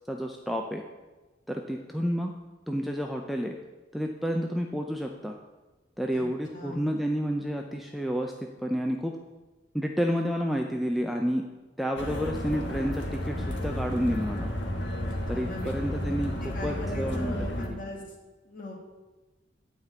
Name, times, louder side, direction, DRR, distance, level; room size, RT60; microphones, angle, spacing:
voice 1, 0.1-0.8 1.5-2.3 2.7-3.5 3.9-5.4 6.0-8.3 8.6-9.1 9.7-11.4 11.8-14.5 15.3-16.3 16.6-17.8, equal, ahead, 2 dB, 0.5 m, -30 dB
voice 2, 6.5-6.9 15.1-15.7 16.4-18.0 18.4-18.7, left 1 dB, 45° left, 0 dB, 2.1 m, -39 dB
sound 1, 12.0-17.7, left 1 dB, 65° left, 1.4 m, -32 dB
9.8 x 5.2 x 7.9 m, 1.2 s
head